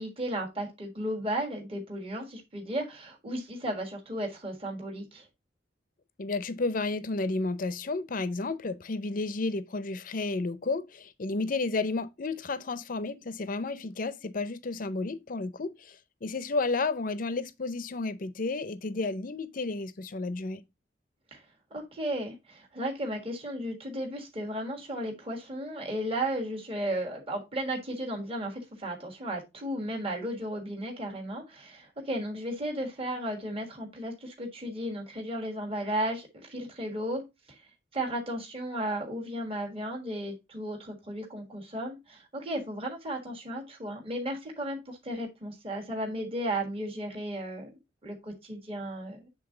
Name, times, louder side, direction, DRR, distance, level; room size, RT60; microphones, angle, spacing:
voice 1, 0.0-5.3 21.3-21.4 21.7-37.6 37.9-47.7 48.0-49.3, right 1 dB, 30° right, 1.5 m, -34 dB
voice 2, 6.2-20.6, left 3 dB, 45° left, 0.6 m, -32 dB
8.0 x 3.6 x 3.7 m
head